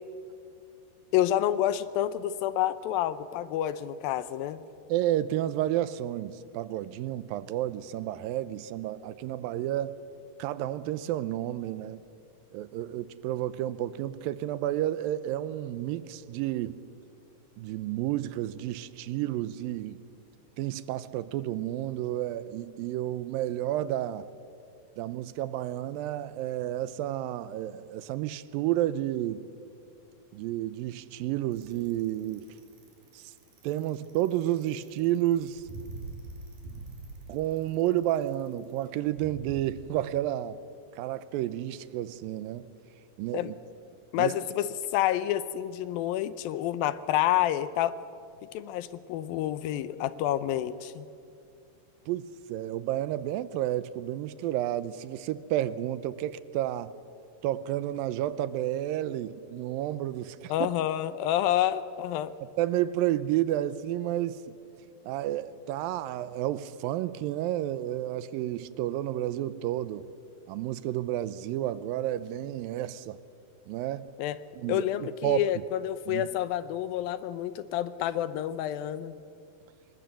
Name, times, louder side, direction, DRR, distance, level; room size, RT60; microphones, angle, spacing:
voice 1, 1.1-4.6 43.3-43.5 44.1-48.0 48.5-51.1 60.5-62.3 74.2-74.4 74.7-79.1, left 12 dB, 80° left, 2.2 m, -28 dB
voice 2, 4.9-10.0 10.4-12.0 12.5-16.8 17.6-20.0 20.6-24.3 25.0-29.4 30.3-32.5 33.1-33.3 33.6-35.6 37.3-40.6 41.0-42.7 43.2-43.5 44.2-44.3 52.1-56.9 57.4-60.7 62.6-64.5 65.1-70.0 70.5-73.2 73.7-74.1 74.6-75.5 76.1-76.3, right 13 dB, 80° right, 2.2 m, -31 dB
Bicycle, 31.5-39.6, right 3 dB, 60° right, 4.3 m, -45 dB
26.0 x 19.5 x 7.6 m
omnidirectional pair, 4.6 m